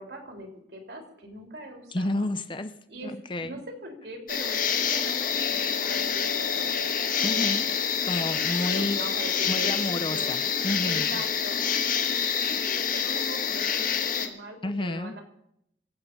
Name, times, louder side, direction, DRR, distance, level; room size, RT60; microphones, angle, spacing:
voice 1, 0.0-2.3 2.9-7.3 7.7-7.9 8.7-15.2, right 1 dB, 65° right, 3 dB, 3.4 m, -42 dB
voice 2, 1.9-2.7 3.0-3.6 7.2-7.7 8.0-9.0 9.5-11.1 14.6-15.1, left 1 dB, 25° left, 11 dB, 0.6 m, -30 dB
sound 1, 4.3-14.3, left 7 dB, 50° left, 1.4 m, -27 dB
24.5 x 8.6 x 5.3 m, 0.77 s
head